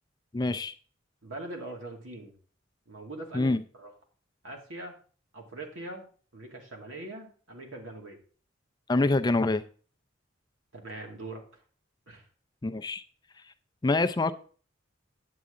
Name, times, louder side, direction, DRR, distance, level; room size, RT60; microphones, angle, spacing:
voice 1, 0.3-0.7 3.3-3.6 8.9-9.6 12.6-13.0 13.8-14.3, left 2 dB, 20° left, 11 dB, 0.4 m, -25 dB
voice 2, 1.2-2.4 2.9-3.5 3.7-3.9 4.4-4.9 5.3-8.2 10.7-11.4 12.1-12.2, right 2 dB, 90° right, 0 dB, 2.4 m, -42 dB
9.4 x 8.4 x 3.7 m, 0.41 s
head